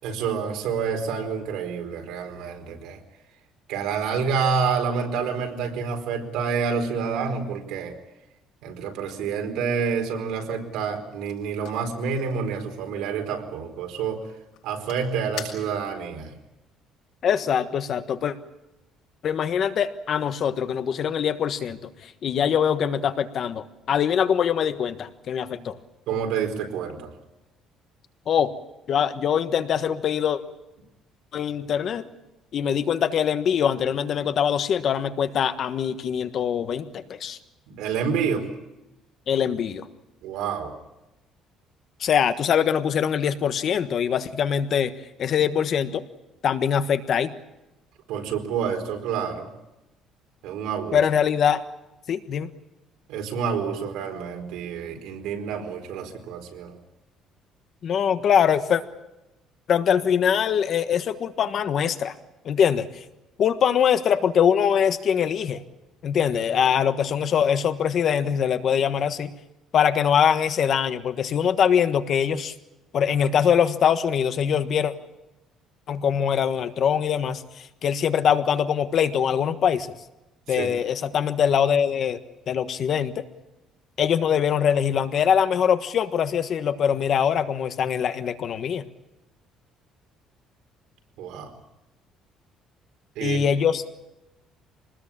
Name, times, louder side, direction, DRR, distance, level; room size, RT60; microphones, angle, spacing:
voice 1, 0.0-3.0 3.7-8.0 8.6-14.2 14.6-16.3 25.5-25.6 26.1-27.1 37.7-38.5 40.2-40.7 48.1-49.5 50.4-51.0 53.1-56.8 80.6-80.7 91.2-91.5 93.2-93.4, right 6 dB, 80° right, 4 dB, 4.6 m, -28 dB
sound 1, 10.9-16.1, left 9 dB, 70° left, 6.4 m, -45 dB
voice 2, 17.2-18.3 19.2-25.8 28.3-28.5 28.9-30.4 31.3-32.1 32.5-37.4 39.3-39.9 42.0-44.9 45.2-46.0 46.4-47.3 50.9-51.6 52.1-52.5 57.8-58.8 59.7-62.1 62.4-63.0 63.4-65.6 66.0-69.3 69.7-72.5 72.9-74.9 75.9-79.9 80.5-82.2 82.5-83.2 84.0-88.8 93.2-93.8, left 8 dB, 45° left, 10 dB, 1.4 m, -23 dB
25.5 x 20.0 x 8.8 m, 0.97 s
cardioid pair, 155°, 0 cm